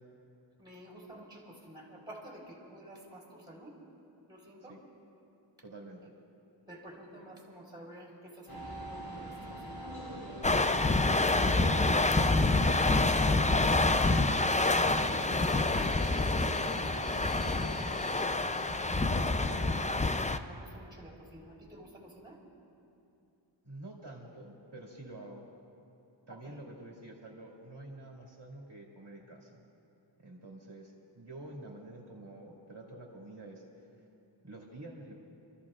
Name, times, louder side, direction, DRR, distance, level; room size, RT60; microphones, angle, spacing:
voice 1, 0.6-3.8 4.3-4.8 6.0-6.1 6.7-10.1 10.4-11.9 12.8-13.6 13.9-15.2 16.4-18.4 19.1-22.4 26.3-26.6, right 1 dB, 10° right, -4 dB, 4.0 m, -50 dB
voice 2, 5.6-6.1 23.6-25.4 26.3-29.6 30.2-33.6 34.4-35.1, right 2 dB, 60° right, -2 dB, 2.1 m, -48 dB
sound 1, 8.5-19.7, equal, 90° left, 2.9 m, -45 dB
sound 2, 10.4-20.4, left 2 dB, 15° left, 0.5 m, -27 dB
30.0 x 14.0 x 2.5 m, 2.7 s
wide cardioid pair, 50°, 46 cm